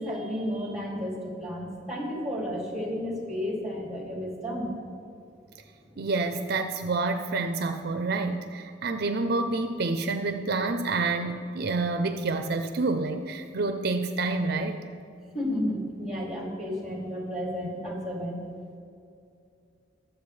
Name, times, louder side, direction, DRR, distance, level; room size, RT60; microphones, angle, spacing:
voice 1, 0.0-4.7 15.3-18.4, equal, ahead, -2 dB, 2.5 m, -32 dB
voice 2, 6.0-14.8, right 3 dB, 60° right, 7 dB, 0.5 m, -28 dB
21.0 x 7.5 x 3.3 m, 2.5 s
head